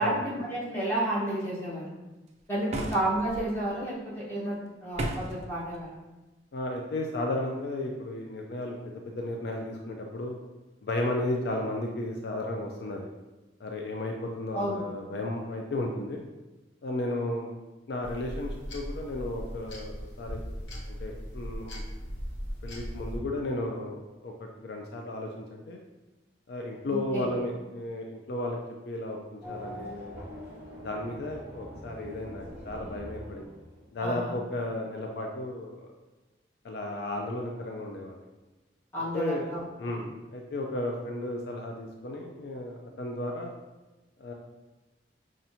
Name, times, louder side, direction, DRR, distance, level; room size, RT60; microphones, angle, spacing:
voice 1, 0.0-2.0 2.5-6.0 14.5-14.8 26.9-27.3 34.0-34.3 38.9-39.6 39.9-40.0, right 1 dB, 15° left, -8 dB, 1.2 m, -31 dB
sound 1, 2.7-3.4 4.9-5.5, right 2 dB, 35° right, 0.3 m, -33 dB
voice 2, 6.5-10.3 10.8-13.1 13.6-16.2 16.8-17.6 17.9-20.4 20.9-21.8 22.6-25.8 26.5-28.6 28.9-30.3 30.8-33.5 33.9-35.8 36.6-38.2 39.1-39.5 39.8-43.5 44.2-44.3, left 1 dB, 60° left, 1 dB, 0.4 m, -34 dB
sound 2, 18.0-23.2, equal, 90° left, 0.8 m, -38 dB
Race car auto racing / Accelerating revving vroom, 29.4-34.1, equal, 10° right, 0.8 m, -43 dB
5.5 x 2.5 x 2.7 m, 1.1 s
head